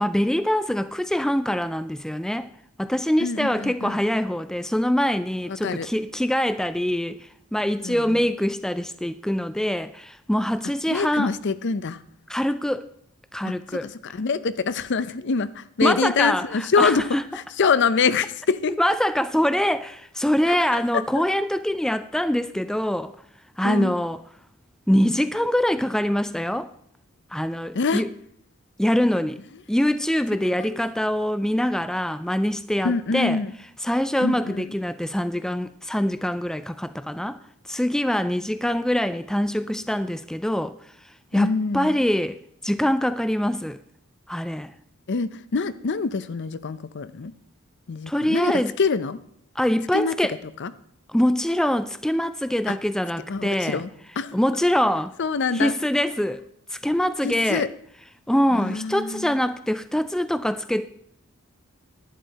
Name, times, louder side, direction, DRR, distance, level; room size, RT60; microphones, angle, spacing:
voice 1, 0.0-2.5 2.8-11.3 12.3-12.9 13.3-13.9 15.8-17.2 18.8-23.1 23.6-24.2 24.9-26.7 27.3-28.1 28.8-29.4 29.7-33.4 33.8-37.4 37.7-40.8 41.0-42.4 42.6-43.8 44.3-44.7 48.1-48.7 49.6-50.3 51.1-53.8 54.3-55.1 55.5-56.4 56.7-57.7 58.3-60.9, equal, 5° left, 0.3 m, -24 dB
voice 2, 3.2-4.0 5.5-5.9 7.8-8.2 10.9-12.0 13.4-17.1 17.3-18.8 20.5-21.0 23.6-24.0 27.7-28.0 30.4-30.8 32.8-33.5 34.2-34.7 41.3-42.0 45.1-47.3 47.9-49.2 49.9-50.7 52.7-52.8 53.3-53.9 54.2-54.3 55.2-55.7 57.2-57.7 58.5-59.4, left 5 dB, 55° left, 0.5 m, -25 dB
11.0 x 10.5 x 4.1 m
head